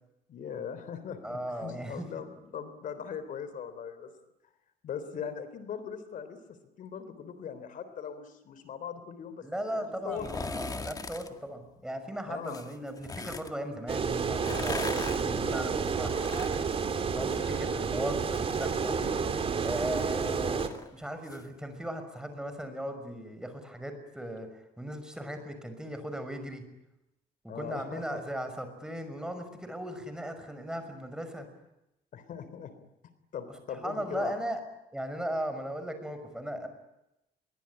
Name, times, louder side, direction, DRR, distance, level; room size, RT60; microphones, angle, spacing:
voice 1, 0.3-4.1 4.8-9.5 9.7-10.3 12.3-12.6 14.5-14.7 17.1-17.7 27.5-28.2 32.1-32.7 33.3-34.4, left 7 dB, 60° left, 12 dB, 3.7 m, -40 dB
voice 2, 1.2-2.1 9.4-16.6 17.1-19.0 19.6-26.6 27.4-31.5 33.7-34.6 34.9-36.7, right 1 dB, 5° right, 8 dB, 5.9 m, -37 dB
sound 1, 10.1-11.3 12.4-13.5 14.3-17.7 18.0-21.4 21.8-21.9, left 4 dB, 25° left, 2.0 m, -41 dB
sound 2, 13.9-20.7, right 5 dB, 40° right, 3.3 m, -30 dB
26.5 x 23.0 x 9.8 m, 0.88 s
cardioid pair, 125°, 15 cm